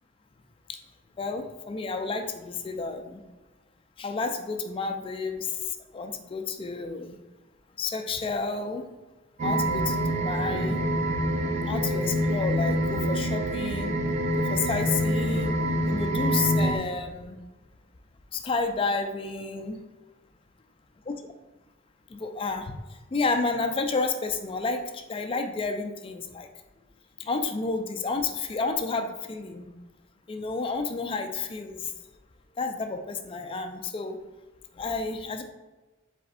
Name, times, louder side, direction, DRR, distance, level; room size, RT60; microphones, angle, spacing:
voice 1, 1.2-3.2 4.0-5.6 5.9-7.2 7.8-8.8 9.4-10.8 11.6-14.0 14.4-15.6 15.9-17.4 18.3-19.8 22.1-22.7 23.1-26.5 27.2-29.7 30.3-31.9 32.6-34.2 34.7-35.4, left 4 dB, 25° left, 6 dB, 0.3 m, -30 dB
sound 1, 9.4-16.8, equal, 35° right, 0.5 m, -26 dB
5.0 x 4.1 x 2.6 m, 1.2 s
head